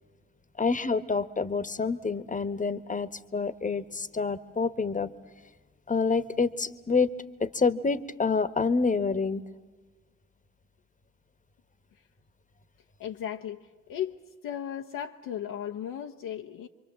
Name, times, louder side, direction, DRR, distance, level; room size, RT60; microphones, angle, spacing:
voice 1, 0.6-5.1 5.9-7.1 7.4-9.4, left 4 dB, 20° left, 14 dB, 1.3 m, -27 dB
voice 2, 13.0-14.2 14.4-16.7, left 10 dB, 65° left, 2 dB, 1.0 m, -36 dB
26.5 x 24.0 x 7.4 m, 1.3 s
hypercardioid pair, 55°, 35 cm